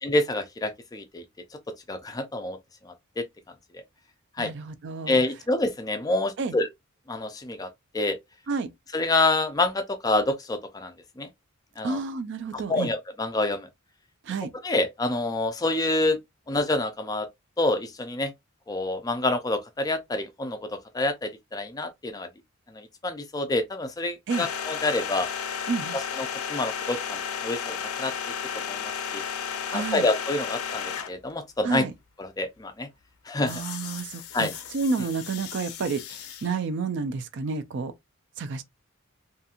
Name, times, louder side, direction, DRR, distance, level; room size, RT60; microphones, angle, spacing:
voice 1, 0.0-1.2 1.9-2.6 2.8-3.3 3.7-3.8 4.4-4.5 5.1-6.7 7.1-8.2 8.9-11.3 11.8-12.0 12.5-13.7 14.6-16.2 16.5-17.3 17.6-18.3 18.7-22.3 22.7-25.3 25.9-28.1 28.5-29.2 29.7-31.8 32.2-32.9 33.3-33.6 34.3-34.5, left 2 dB, 15° left, 0.3 m, -27 dB
voice 2, 4.4-5.2 6.4-6.6 8.5-8.7 11.8-12.9 14.2-14.5 24.3-24.5 25.7-26.0 29.7-30.1 31.6-31.9 33.4-37.9 38.4-38.6, right 4 dB, 55° right, 0.4 m, -30 dB
sound 1, 24.3-31.3 33.5-36.5, left 7 dB, 80° left, 0.5 m, -34 dB
2.8 x 2.6 x 2.4 m
head